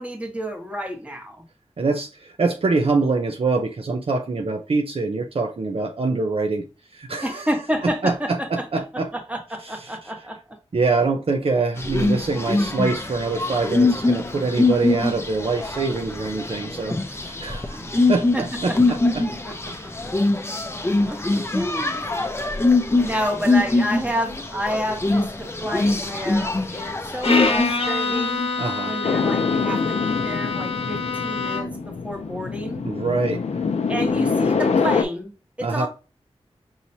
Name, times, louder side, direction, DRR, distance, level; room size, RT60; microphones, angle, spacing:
voice 1, 0.0-1.4 7.2-10.6 17.7-17.9 18.3-18.8 19.4-20.1 21.0-22.1 22.9-28.5 28.8-32.9 33.9-35.9, equal, 10° right, 1.4 m, -30 dB
voice 2, 1.8-6.6 6.9-7.4 8.0-9.1 10.7-17.8 18.1-18.7 19.1-19.2 28.6-28.9 32.8-33.4 35.6-35.9, right 3 dB, 60° right, 0.6 m, -24 dB
sound 1, 11.8-28.5, left 2 dB, 25° left, 0.6 m, -23 dB
Bowed string instrument, 27.2-31.9, left 3 dB, 60° left, 0.9 m, -26 dB
sound 2, 29.0-35.0, left 5 dB, 90° left, 0.5 m, -25 dB
5.6 x 3.0 x 2.7 m
wide cardioid pair, 65°, 11 cm